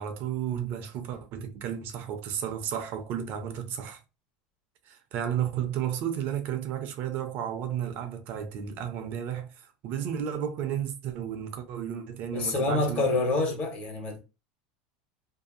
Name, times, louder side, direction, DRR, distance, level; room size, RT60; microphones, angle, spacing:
voice 1, 0.0-4.0 4.9-13.0, right 9 dB, 55° right, 0.6 m, -33 dB
voice 2, 12.3-14.2, left 2 dB, 45° left, 1.3 m, -27 dB
2.7 x 2.6 x 2.5 m
supercardioid pair, 115°, 4 cm